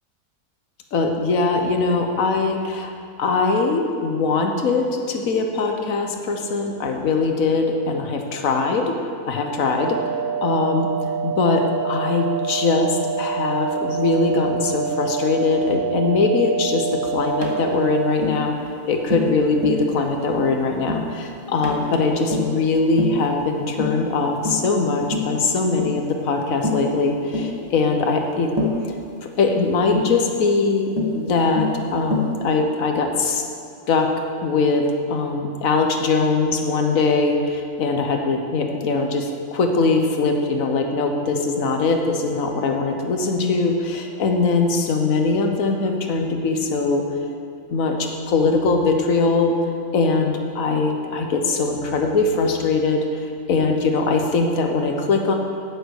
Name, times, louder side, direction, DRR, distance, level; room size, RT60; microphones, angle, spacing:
voice 1, 0.9-2.9 3.2-8.9 9.2-10.0 10.4-10.9 11.2-18.5 18.9-28.5 29.4-33.4 33.9-34.1 34.4-47.0 47.7-49.6 49.9-53.2 53.5-55.4, left 3 dB, 65° left, 4 dB, 1.5 m, -21 dB
sound 1, 9.8-18.1, right 7 dB, 85° right, 0.5 m, -27 dB
Tap, 17.4-17.6 18.2-18.4 19.1-19.3 19.6-19.9 20.3-20.5 20.9-21.1 21.6-21.8 22.3-22.6 23.0-23.2 23.8-24.0 24.4-24.7 25.1-25.3 25.8-26.0 26.6-26.9 27.3-27.5 28.6-28.8 29.9-30.2 31.0-31.2 31.6-31.8 32.1-32.4, left 2 dB, 20° right, 1.2 m, -25 dB
9.3 x 9.2 x 6.5 m, 2.3 s
omnidirectional pair, 1.6 m